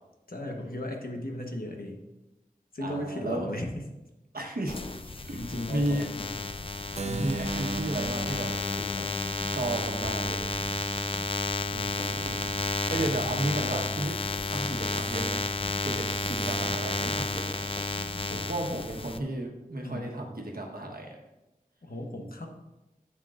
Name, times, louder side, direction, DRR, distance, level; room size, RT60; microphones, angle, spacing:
voice 1, 0.3-2.0 2.7-3.8 5.3-6.3 7.0-7.4 11.7-12.4 18.3-18.8 19.8-20.1 21.8-22.5, left 1 dB, 80° left, 2 dB, 1.1 m, -36 dB
voice 2, 2.8-3.5 4.3-4.8 5.3-5.4 5.7-6.1 7.2-9.1 9.5-10.4 12.9-14.2 14.5-15.4 15.8-17.7 18.5-21.2, right 1 dB, 85° right, 1 dB, 1.2 m, -33 dB
sound 1, 4.7-19.2, left 3 dB, 40° left, 0.5 m, -32 dB
Keyboard (musical), 7.0-12.8, right 3 dB, 50° right, 0.4 m, -39 dB
9.9 x 7.4 x 2.5 m, 1.0 s
wide cardioid pair, 45°, 15 cm